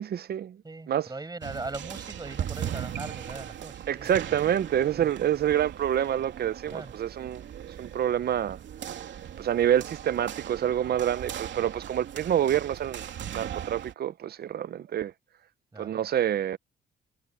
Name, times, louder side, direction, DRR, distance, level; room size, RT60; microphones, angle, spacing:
voice 1, 0.0-0.6 0.9-1.1 3.9-7.4 7.8-8.6 9.4-13.1 13.3-15.1 15.8-16.6, right 10 dB, 50° right, 0.7 m, -27 dB
voice 2, 0.6-4.1 5.0-5.1 6.7-6.9 15.7-16.0, right 3 dB, 20° right, 7.6 m, -39 dB
sound 1, 1.4-13.9, right 10 dB, 65° right, 3.0 m, -39 dB
cardioid pair, 90°, 20 cm